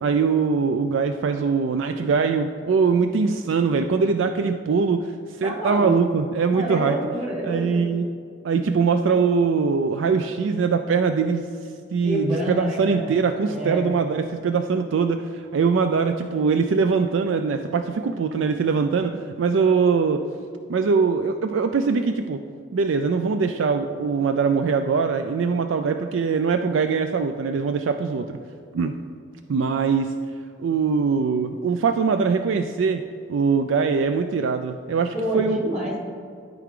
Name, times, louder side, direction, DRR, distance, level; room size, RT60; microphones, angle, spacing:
voice 1, 0.0-7.0 7.4-8.1 8.4-11.5 11.9-20.2 20.7-22.4 22.7-28.4 28.7-29.0 29.5-30.1 30.6-33.0 33.3-35.7, right 5 dB, 70° right, 8 dB, 0.4 m, -22 dB
voice 2, 5.4-5.9 6.5-7.8 12.0-13.1 13.5-13.9 35.1-36.0, equal, 35° right, -2 dB, 2.0 m, -28 dB
12.5 x 4.8 x 3.7 m, 2.4 s
head